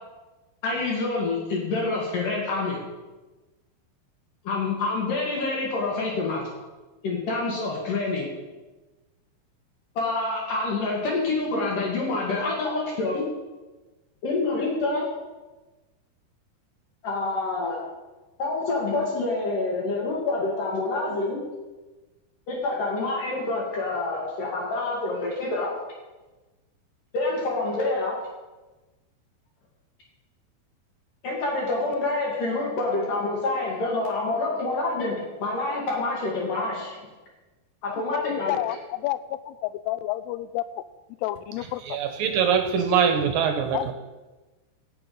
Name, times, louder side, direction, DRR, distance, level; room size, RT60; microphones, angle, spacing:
voice 1, 0.6-2.8 4.4-6.5 7.0-8.3 9.9-13.2 14.2-15.1 17.0-17.8 18.4-21.4 22.5-25.7 27.1-28.2 31.2-37.0 37.8-38.6, left 3 dB, 60° left, -3 dB, 3.4 m, -27 dB
voice 2, 37.9-40.7 41.2-42.0 43.7-43.9, left 15 dB, 85° left, 15 dB, 2.6 m, -30 dB
voice 3, 41.9-43.9, right 7 dB, 75° right, 5 dB, 2.3 m, -23 dB
17.0 x 6.7 x 5.4 m, 1.2 s
omnidirectional pair, 4.7 m